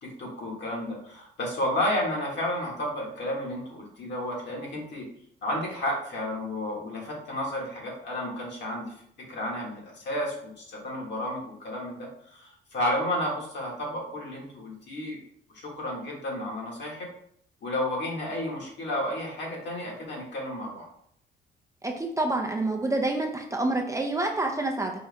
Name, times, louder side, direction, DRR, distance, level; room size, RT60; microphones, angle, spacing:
voice 1, 0.0-5.1 5.4-8.9 9.3-15.2 15.5-17.1 17.6-20.9, left 1 dB, 60° left, -2 dB, 1.6 m, -32 dB
voice 2, 21.8-24.9, right 2 dB, 15° right, 1 dB, 0.5 m, -27 dB
4.7 x 2.6 x 3.4 m, 0.68 s
cardioid pair, 90°, 20 cm